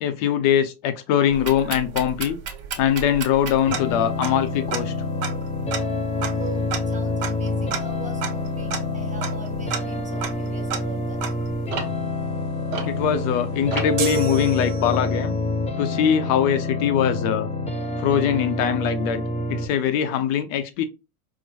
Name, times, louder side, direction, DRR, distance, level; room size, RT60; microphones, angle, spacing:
voice 1, 0.0-2.4 2.8-4.9 12.8-15.3 15.8-17.5 18.0-19.2 19.5-20.8, left 9 dB, 60° left, 0.6 m, -22 dB
sound 1, 1.3-13.3 13.7-14.2, right 6 dB, 55° right, 1.4 m, -33 dB
sound 2, 3.7-19.7, left 2 dB, 15° left, 0.5 m, -27 dB
voice 2, 6.3-11.2, right 5 dB, 15° right, 1.1 m, -41 dB
sound 3, 14.0-15.3, right 6 dB, 85° right, 0.7 m, -29 dB
4.4 x 2.0 x 2.9 m
hypercardioid pair, 95°, 43 cm